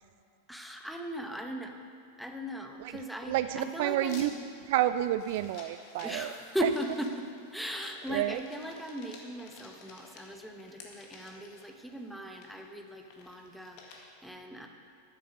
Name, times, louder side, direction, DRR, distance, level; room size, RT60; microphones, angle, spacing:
voice 1, 0.5-1.8 2.2-4.4 6.0-14.7, equal, ahead, 3 dB, 1.1 m, -38 dB
voice 2, 3.3-4.3 4.7-6.3 8.1-8.4, right 13 dB, 50° right, 12 dB, 0.3 m, -29 dB
sound 1, 4.1-14.0, left 4 dB, 45° left, 1.8 m, -53 dB
12.0 x 9.1 x 6.6 m, 2.4 s
figure-of-eight pair, 90°, 0 cm